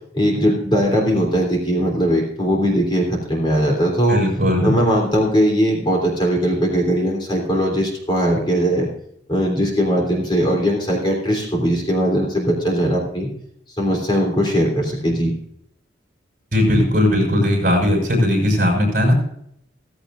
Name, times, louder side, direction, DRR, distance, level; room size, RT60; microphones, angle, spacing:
voice 1, 0.1-4.2 4.6-8.9 9.3-13.3 13.8-15.3, equal, 25° left, 0 dB, 3.3 m, -19 dB
voice 2, 4.1-4.7 16.5-19.1, left 1 dB, 45° right, 0 dB, 5.4 m, -17 dB
15.5 x 15.5 x 2.6 m, 0.70 s
head